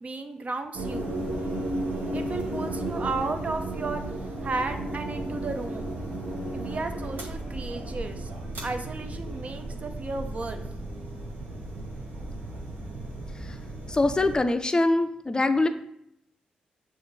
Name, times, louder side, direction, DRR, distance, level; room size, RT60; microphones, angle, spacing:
voice 1, 0.0-1.2 2.1-4.0 4.4-5.9 6.5-8.3 8.6-10.6, right 3 dB, 45° right, 7 dB, 0.5 m, -34 dB
sound 1, 0.7-14.4, right 1 dB, 70° right, 1.0 m, -34 dB
voice 2, 13.9-15.7, left 2 dB, 25° left, 9 dB, 0.4 m, -23 dB
6.6 x 2.5 x 2.6 m, 0.77 s
hypercardioid pair, 40°, 3 cm